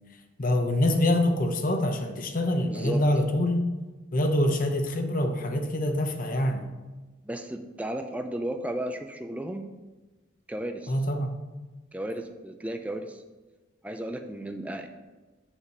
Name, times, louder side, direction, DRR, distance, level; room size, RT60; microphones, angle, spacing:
voice 1, 0.4-3.7 4.1-6.7 10.9-11.4, left 1 dB, 45° left, 5 dB, 0.8 m, -25 dB
voice 2, 2.7-3.0 7.2-9.7 10.5-10.9 11.9-13.2 13.8-14.9, right 1 dB, 5° right, 5 dB, 0.4 m, -34 dB
7.3 x 5.0 x 5.2 m, 1.2 s
head